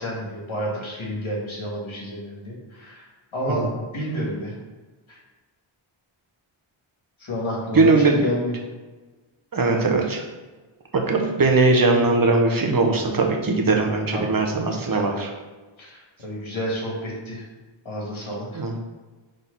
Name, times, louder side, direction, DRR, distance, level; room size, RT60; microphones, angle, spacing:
voice 1, 0.0-3.0 3.3-3.7 3.9-4.6 5.1-5.2 7.2-8.6 14.1-14.4 14.8-15.2 15.8-17.5 17.9-18.6, equal, 70° left, -3 dB, 1.9 m, -30 dB
voice 2, 7.7-8.2 9.5-10.2 10.9-15.3 18.5-18.8, right 3 dB, 45° right, 2 dB, 1.0 m, -20 dB
4.7 x 3.8 x 5.2 m, 1.3 s
wide cardioid pair, 80°, 49 cm